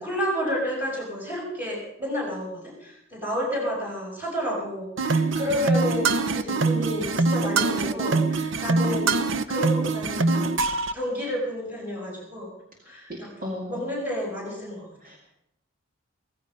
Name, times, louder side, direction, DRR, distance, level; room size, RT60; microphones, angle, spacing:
voice 1, 0.0-12.5 12.9-14.9, equal, 10° right, -3 dB, 6.1 m, -31 dB
sound 1, 5.0-10.9, right 3 dB, 70° right, 0.7 m, -24 dB
voice 2, 13.1-13.8 15.0-15.2, left 1 dB, 45° right, 0 dB, 2.2 m, -35 dB
16.0 x 15.0 x 5.4 m, 0.78 s
head